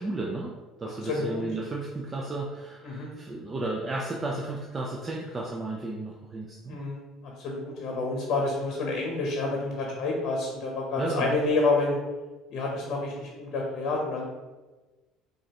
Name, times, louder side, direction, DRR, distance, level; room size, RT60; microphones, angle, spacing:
voice 1, 0.0-6.8 11.0-11.4, right 2 dB, 25° right, -2 dB, 0.4 m, -33 dB
voice 2, 1.1-1.4 2.8-3.1 6.7-7.0 7.4-12.0 12.5-14.2, left 3 dB, 60° left, -1 dB, 0.8 m, -28 dB
4.8 x 2.5 x 2.9 m, 1.2 s
cardioid pair, 110°, 0 cm